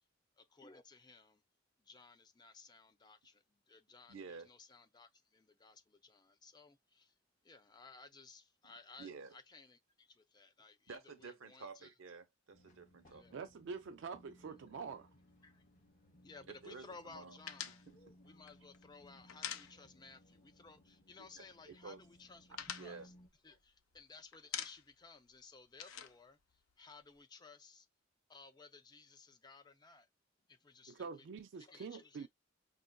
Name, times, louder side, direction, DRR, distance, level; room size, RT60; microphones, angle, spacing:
voice 1, 0.4-1.4 1.9-7.1 7.4-11.9 13.1-13.4 15.4-15.6 16.2-17.9 18.2-23.1 23.4-26.4 26.8-27.9 28.3-30.1 30.5-31.3 31.6-32.3, left 4 dB, 20° left, 0.4 m, -58 dB
voice 2, 4.1-4.5 9.0-9.3 10.9-13.3 16.6-17.4 17.9-18.0 21.2-22.0 22.7-23.1, right 4 dB, 80° right, 0.8 m, -51 dB
sound 1, 12.5-23.3, equal, 40° left, 0.8 m, -64 dB
voice 3, 13.3-15.1 30.9-32.3, right 5 dB, 60° right, 0.4 m, -46 dB
sound 2, 17.5-20.2 20.5-20.7 21.0-21.7 22.0-24.0 24.3-25.1 25.3-27.2, left 9 dB, 90° left, 0.5 m, -46 dB
5.3 x 2.4 x 2.3 m
head